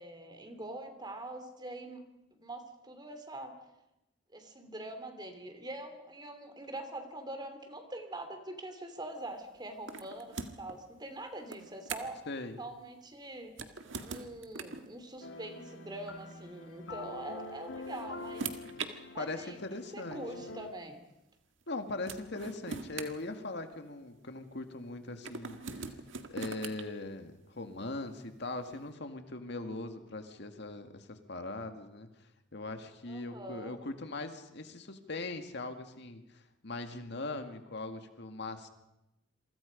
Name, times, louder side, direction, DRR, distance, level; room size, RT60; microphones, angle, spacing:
voice 1, 0.0-2.0 2.4-3.5 4.3-12.2 12.6-13.5 14.0-18.5 19.1-19.6 19.9-21.0 33.1-33.7, right 1 dB, 20° right, 7 dB, 3.0 m, -44 dB
sound 1, 9.9-10.8 11.5-12.3 13.5-14.9 16.2-16.3 17.5-18.9 19.9-20.0 21.6-21.7 22.1-23.9 25.2-26.8, right 4 dB, 75° right, 1.8 m, -42 dB
voice 2, 12.3-12.6 19.2-20.2 21.7-25.9 26.3-32.1 32.5-38.7, left 2 dB, 60° left, 7 dB, 2.0 m, -40 dB
sound 2, 15.2-20.7, left 3 dB, 80° left, 1.8 m, -46 dB
27.5 x 24.0 x 5.2 m, 0.91 s
head